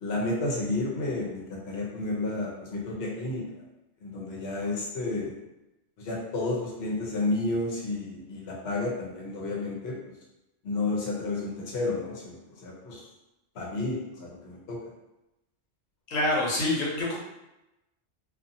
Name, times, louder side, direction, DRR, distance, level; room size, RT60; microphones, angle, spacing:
voice 1, 0.0-3.4 4.0-5.3 6.0-9.9 10.6-13.0 13.5-14.8, left 2 dB, 60° left, -3 dB, 1.0 m, -31 dB
voice 2, 16.1-17.2, left 1 dB, 90° left, -4 dB, 1.2 m, -26 dB
2.7 x 2.5 x 2.6 m, 0.93 s
omnidirectional pair, 1.3 m